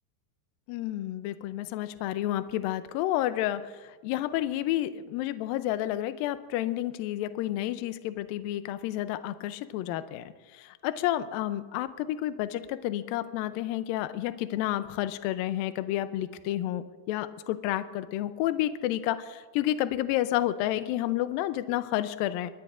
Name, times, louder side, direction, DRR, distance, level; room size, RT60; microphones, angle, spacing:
voice 1, 0.7-22.5, left 13 dB, 85° left, 11 dB, 2.1 m, -30 dB
22.5 x 19.0 x 2.5 m, 1.3 s
omnidirectional pair, 4.8 m